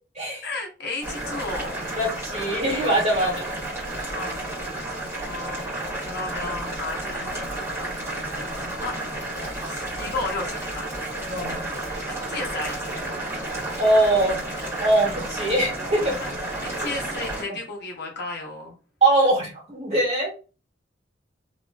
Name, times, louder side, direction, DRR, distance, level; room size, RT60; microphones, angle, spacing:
voice 1, 0.4-1.7 3.2-3.4 4.1-4.4 5.2-5.7 6.0-9.0 9.7-10.9 12.1-12.9 16.2-16.3 16.6-18.8, left 3 dB, 60° left, 0 dB, 1.0 m, -34 dB
Boiling, 1.0-17.4, right 1 dB, 15° right, 1.6 m, -31 dB
voice 2, 1.9-3.3 11.3-11.6 13.8-14.4 14.8-16.1 19.0-20.3, right 1 dB, 40° right, -3 dB, 1.7 m, -22 dB
3.1 x 2.9 x 2.2 m, 0.32 s
head